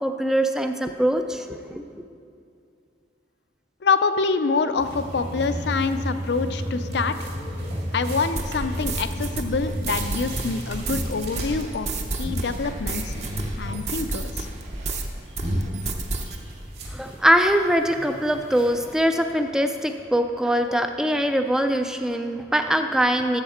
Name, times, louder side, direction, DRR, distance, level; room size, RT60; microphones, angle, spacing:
voice 1, 0.0-1.8 16.9-23.4, equal, 5° right, 6 dB, 0.3 m, -22 dB
voice 2, 3.8-7.3 7.9-11.9 12.1-14.5, left 4 dB, 65° left, 10 dB, 0.5 m, -26 dB
sound 1, 4.8-19.0, equal, 60° right, 2.4 m, -33 dB
sound 2, 8.4-15.1 15.4-16.4, right 2 dB, 40° right, 0.8 m, -31 dB
13.0 x 7.3 x 4.3 m, 2.4 s
head